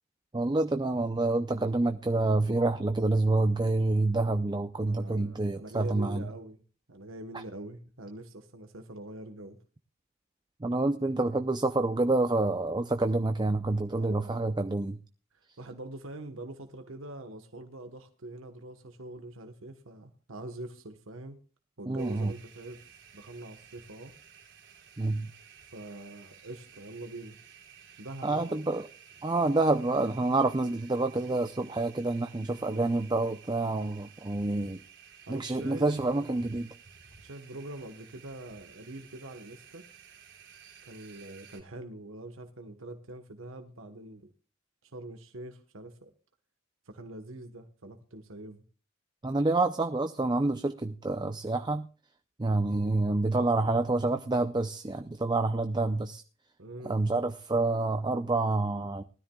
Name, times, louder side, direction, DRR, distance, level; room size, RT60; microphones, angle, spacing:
voice 1, 0.3-6.3 10.6-15.0 21.9-22.3 25.0-25.3 28.2-28.9 29.2-34.8 35.3-36.7 49.2-51.9 52.4-56.2 56.8-59.0, right 2 dB, 20° right, 0.5 m, -28 dB
voice 2, 4.8-6.6 6.9-9.6 14.0-14.5 15.3-21.4 21.8-22.8 23.1-24.1 25.7-27.4 28.0-28.5 32.7-33.0 35.3-36.5 37.2-39.9 40.9-44.3 44.8-46.1 46.9-48.6 56.6-57.0, right 2 dB, 75° right, 1.2 m, -44 dB
sound 1, 22.0-41.6, right 7 dB, 60° right, 3.3 m, -54 dB
19.5 x 13.0 x 2.3 m
head